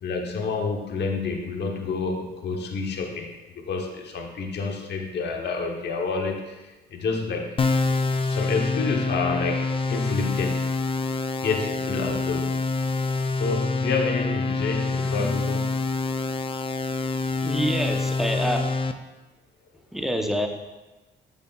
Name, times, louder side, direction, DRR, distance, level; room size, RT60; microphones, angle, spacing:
voice 1, 0.0-7.7 8.2-9.6 9.9-10.7 11.4-12.6 13.4-15.8, left 4 dB, 60° left, 1 dB, 1.0 m, -29 dB
sound 1, 7.6-18.9, left 3 dB, 25° left, 0.4 m, -26 dB
voice 2, 17.4-18.6 19.9-20.5, equal, ahead, 3 dB, 0.8 m, -26 dB
8.0 x 7.1 x 2.4 m, 1.1 s
cardioid pair, 90°, 20 cm